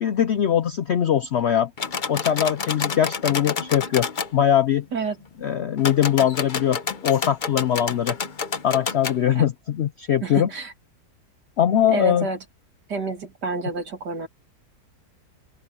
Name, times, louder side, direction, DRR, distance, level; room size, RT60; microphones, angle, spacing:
voice 1, 0.0-1.7 2.1-4.1 4.3-4.9 5.4-8.2 8.6-10.5 11.6-12.3, left 9 dB, 65° left, 0.6 m, -21 dB
sound 1, 1.8-4.3 5.8-9.2, left 5 dB, 35° left, 0.9 m, -29 dB
voice 2, 10.2-10.7 11.9-12.4 12.9-14.3, right 4 dB, 80° right, 3.2 m, -29 dB
open air
omnidirectional pair, 1.8 m